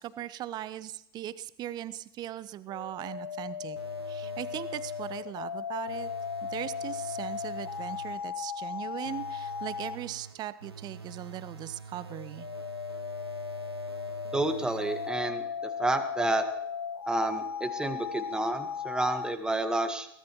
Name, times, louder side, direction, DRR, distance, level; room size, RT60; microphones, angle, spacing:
voice 1, 0.0-3.8 4.1-6.1 6.5-12.5, right 12 dB, 35° right, 16 dB, 0.8 m, -39 dB
sound 1, 2.7-10.0 12.1-19.4, left 7 dB, 80° left, 0.8 m, -37 dB
sound 2, 3.8-5.4 5.9-8.4 9.0-15.4, right 5 dB, 85° right, 1.0 m, -46 dB
voice 2, 14.3-15.4 15.8-16.4 17.1-20.1, right 2 dB, 5° right, 7 dB, 1.6 m, -29 dB
22.0 x 17.0 x 3.1 m, 0.71 s
figure-of-eight pair, 90°, 13 cm